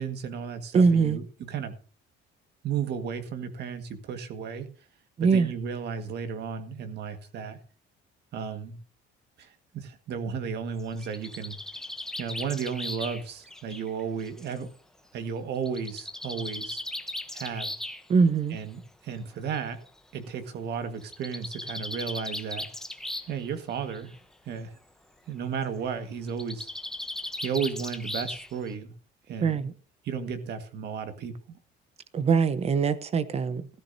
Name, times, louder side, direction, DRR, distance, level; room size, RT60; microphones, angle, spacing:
voice 1, 0.0-1.8 2.6-4.7 5.2-7.6 8.3-8.8 9.4-11.6 12.2-14.7 15.1-16.8 17.3-17.7 18.5-19.9 20.1-22.7 23.3-24.1 24.5-24.7 25.3-26.7 27.4-28.9 29.3-29.6 30.0-31.3, right 6 dB, 55° right, 1.7 m, -34 dB
voice 2, 0.7-1.2 5.2-5.5 18.1-18.6 29.4-29.7 32.1-33.7, right 5 dB, 30° right, 0.8 m, -22 dB
Bird, 10.8-14.6 15.7-18.0 19.1-19.2 19.5-19.6 19.9-20.0 21.0-23.4 23.7-24.2 26.3-28.7, left 1 dB, ahead, 0.8 m, -37 dB
16.0 x 13.5 x 2.7 m
cardioid pair, 160°, 21 cm